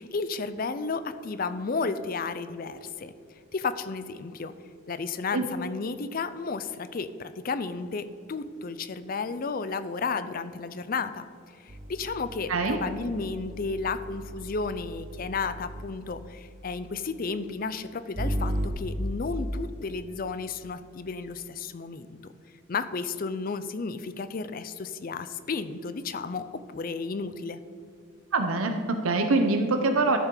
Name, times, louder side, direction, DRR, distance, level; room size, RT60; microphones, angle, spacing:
voice 1, 0.0-3.1 3.5-4.5 4.9-11.3 11.6-22.1 22.7-27.6, left 4 dB, 40° left, 12 dB, 0.4 m, -33 dB
sound 1, 11.7-16.1 18.1-18.7, right 1 dB, 35° right, 0.9 m, -35 dB
voice 2, 28.3-30.2, right 3 dB, 85° right, 5 dB, 0.8 m, -24 dB
13.0 x 7.2 x 3.9 m, 2.4 s
head